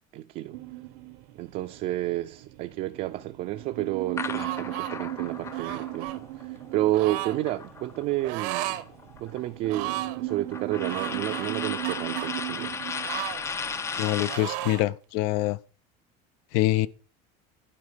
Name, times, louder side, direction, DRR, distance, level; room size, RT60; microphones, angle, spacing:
voice 1, 0.1-0.6 1.4-8.8 9.2-12.8, right 15 dB, 40° right, 0.5 m, -31 dB
sound 1, 0.5-14.5, right 17 dB, 85° right, 1.2 m, -38 dB
sound 2, 4.2-8.2 8.5-14.5, left 5 dB, 15° left, 0.5 m, -36 dB
sound 3, 4.3-4.9 5.5-6.2 6.9-7.4 8.2-8.8 9.2-9.3 9.6-10.2 10.9-12.3 13.0-14.0 14.3-14.9, right 15 dB, 65° right, 0.9 m, -34 dB
voice 2, 14.0-15.6 16.5-16.9, left 16 dB, 65° left, 0.6 m, -25 dB
11.5 x 4.9 x 6.7 m
cardioid pair, 170°, 20 cm